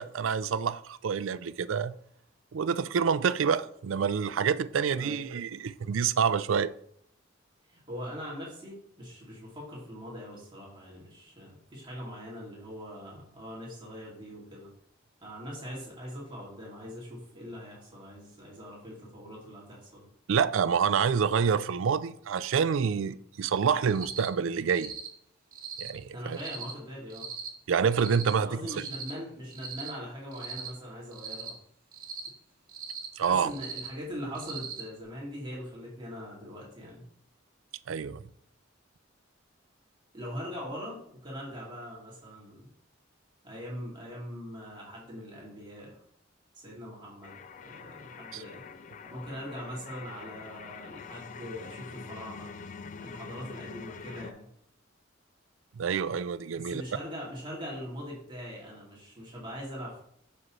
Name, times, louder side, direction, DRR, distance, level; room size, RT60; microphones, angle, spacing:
voice 1, 0.0-1.9 2.5-6.7 20.3-24.9 25.8-26.4 27.7-28.8 33.2-33.5 37.9-38.2 48.3-48.4 55.8-56.8, right 6 dB, 90° right, 0.4 m, -27 dB
voice 2, 4.8-5.3 7.7-14.7 15.2-20.1 26.1-27.3 28.3-31.5 33.2-37.0 40.1-42.7 43.4-46.0 46.6-48.6 49.1-52.5 53.0-54.4 56.5-60.0, equal, 25° right, 2.4 m, -41 dB
Cricket, 23.9-24.3 24.7-25.1 25.5-25.9 26.3-26.7 27.1-27.5 27.9-28.3 28.7-29.1 29.5-29.9 30.3-30.7 31.1-31.5 31.9-32.3 32.7-33.1 33.5-33.9 34.3-34.8, right 8 dB, 45° right, 1.4 m, -40 dB
sound 1, 47.2-54.3, left 5 dB, 40° left, 0.3 m, -45 dB
7.5 x 6.2 x 3.1 m
head